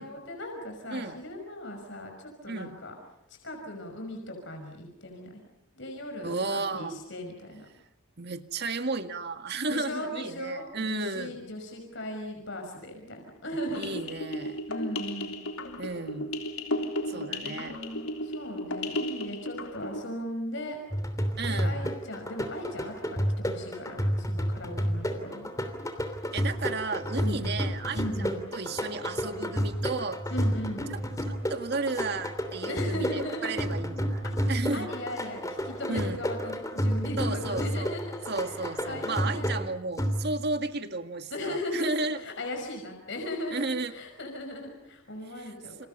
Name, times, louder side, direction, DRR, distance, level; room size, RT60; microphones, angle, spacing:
voice 1, 0.0-2.9 3.3-5.4 5.8-7.7 9.7-14.1 14.7-15.4 16.8-20.8 21.5-25.6 27.2-27.5 27.9-28.4 30.3-30.9 32.7-33.5 34.2-34.3 34.7-38.6 38.8-39.6 41.3-45.9, left 1 dB, 60° left, 3 dB, 5.7 m, -38 dB
voice 2, 6.2-7.0 8.2-11.3 13.7-14.6 15.8-16.3 17.1-17.8 21.4-21.8 26.3-30.2 30.9-31.0 31.3-34.9 35.9-36.2 37.2-38.0 38.3-42.2 43.5-43.9 45.3-45.5 45.8-45.9, right 3 dB, 50° right, 7 dB, 1.9 m, -33 dB
sound 1, 13.7-20.0, left 1 dB, 90° left, 3.5 m, -34 dB
sound 2, 20.9-40.6, equal, 15° left, 3.1 m, -31 dB
29.5 x 28.5 x 5.6 m, 0.83 s
head